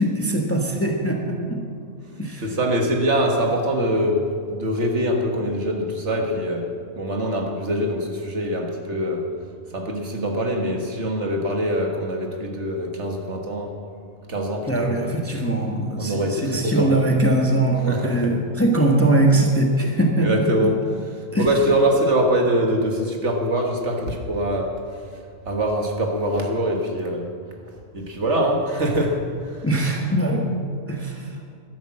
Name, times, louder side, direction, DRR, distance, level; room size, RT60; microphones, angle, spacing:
voice 1, 0.0-1.6 2.2-2.5 14.7-20.7 21.3-21.5 29.6-30.4 30.9-31.3, right 1 dB, 10° left, 1 dB, 1.3 m, -21 dB
voice 2, 2.4-9.2 9.7-13.7 14.3-15.1 16.0-16.9 17.9-18.3 20.2-20.8 21.3-24.7 25.4-27.3 27.9-29.6, equal, 55° right, 2 dB, 1.8 m, -23 dB
12.5 x 10.5 x 7.5 m, 2.2 s
omnidirectional pair, 1.4 m